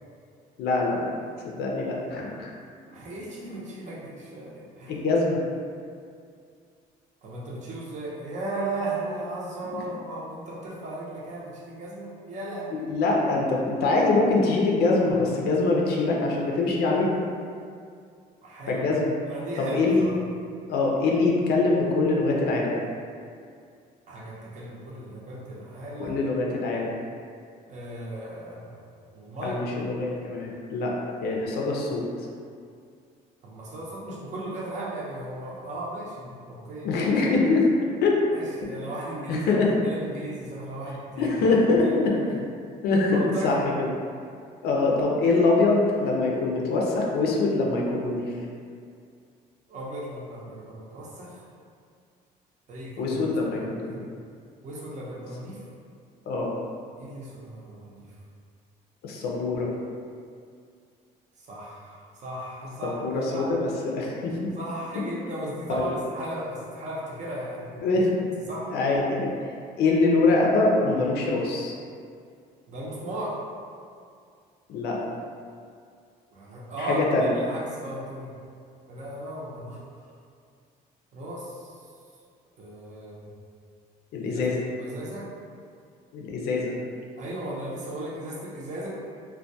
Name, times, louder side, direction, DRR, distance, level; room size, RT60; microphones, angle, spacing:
voice 1, 0.6-1.0 1.4-2.5 4.9-5.4 12.9-17.1 18.7-19.1 19.6-20.1 20.7-22.8 26.0-26.9 29.4-30.9 31.2-32.1 36.8-38.2 39.3-39.7 41.2-42.1 42.8-43.9 44.6-48.3 53.0-53.9 56.3-56.5 59.0-59.7 62.8-64.3 65.8-65.9 67.8-68.2 68.7-69.3 69.8-71.7 74.7-75.0 76.8-77.3 84.1-84.6 86.1-86.7, left 3 dB, 70° left, -2 dB, 0.4 m, -24 dB
voice 2, 2.9-4.9 7.2-12.9 18.4-18.8 19.3-20.1 24.1-26.2 27.7-28.8 29.1-29.8 33.4-37.0 38.3-42.4 43.1-43.6 49.7-51.4 52.7-53.2 53.4-54.1 54.6-55.6 57.0-58.1 61.4-63.5 64.6-67.8 68.5-68.7 72.7-73.3 76.3-78.3 78.9-79.8 81.1-81.6 82.6-83.3 84.2-84.3 84.7-85.3 87.2-88.9, right 1 dB, 45° right, -5 dB, 0.6 m, -36 dB
2.2 x 2.2 x 2.6 m, 2.3 s
cardioid pair, 110°, 17 cm